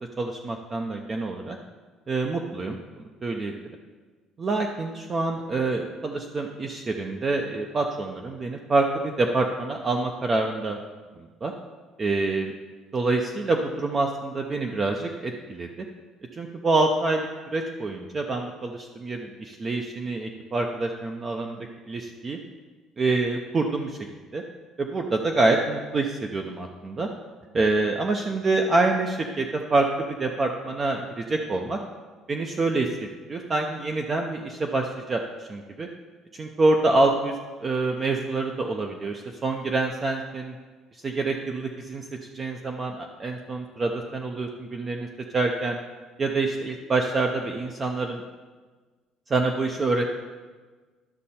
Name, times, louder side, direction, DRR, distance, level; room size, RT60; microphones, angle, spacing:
voice 1, 0.2-1.6 2.1-2.8 3.2-3.5 4.4-10.8 11.4-11.5 12.0-12.5 12.9-15.9 16.3-22.4 23.0-24.0 24.3-24.4 24.8-27.1 27.5-29.9 30.2-31.8 32.3-35.9 36.3-37.3 37.6-40.5 41.0-42.0 42.3-45.1 45.3-45.8 46.2-48.2 49.3-50.1, right 3 dB, 20° right, 3 dB, 0.5 m, -26 dB
12.0 x 6.4 x 4.2 m, 1.4 s
cardioid pair, 180°, 0 cm